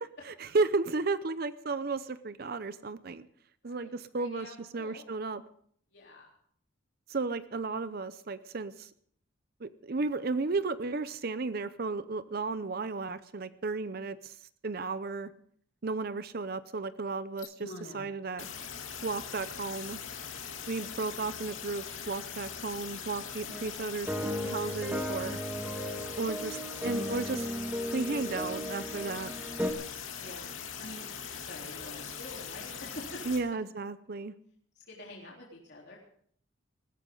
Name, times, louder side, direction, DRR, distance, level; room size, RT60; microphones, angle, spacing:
voice 1, 0.3-3.3 3.6-4.5 4.7-5.4 7.1-8.9 9.6-14.4 14.6-15.3 15.8-18.5 19.0-20.0 20.7-24.1 24.4-25.4 26.2-27.5 27.9-29.3 33.3-34.3, right 3 dB, 50° right, 14 dB, 0.6 m, -34 dB
voice 2, 3.6-5.0 5.9-6.3 30.2-33.4 34.9-36.0, left 1 dB, 55° left, -4 dB, 3.7 m, -48 dB
sound 1, 17.4-18.1 18.4-33.4, left 7 dB, 85° left, 2.6 m, -41 dB
sound 2, 23.5-23.7 24.1-29.7, equal, 10° right, 1.6 m, -35 dB
20.5 x 15.5 x 3.9 m, 0.62 s
head